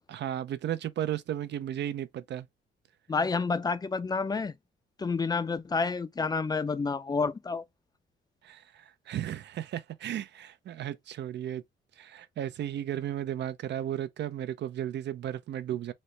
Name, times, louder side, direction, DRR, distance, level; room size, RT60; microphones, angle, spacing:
voice 1, 0.1-2.5 8.4-11.6 12.0-15.9, right 11 dB, 60° right, 0.5 m, -34 dB
voice 2, 3.1-4.5 5.0-7.6, left 4 dB, 20° left, 0.5 m, -29 dB
4.1 x 2.1 x 3.2 m
cardioid pair, 90°, 20 cm